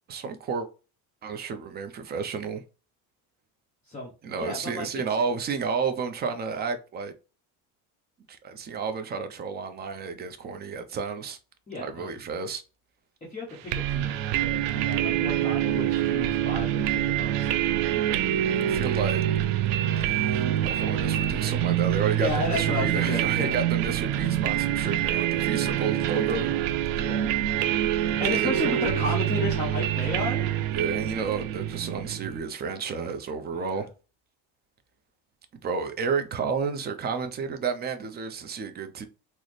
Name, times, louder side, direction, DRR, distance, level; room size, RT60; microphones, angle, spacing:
voice 1, 0.1-0.7 1.2-2.6 4.2-7.1 8.3-11.4 11.8-12.6 18.6-19.2 20.0-20.4 20.6-26.5 28.3-28.7 30.7-33.9 35.6-39.0, right 5 dB, 25° right, 0.4 m, -31 dB
voice 2, 4.4-4.9 11.7-12.1 13.3-17.5 22.1-23.6 26.9-27.4 28.2-30.5 33.5-33.9, left 2 dB, 15° left, 0.9 m, -33 dB
sound 1, 13.7-32.4, right 11 dB, 80° right, 0.6 m, -26 dB
4.0 x 2.0 x 3.1 m
cardioid pair, 145°, 42 cm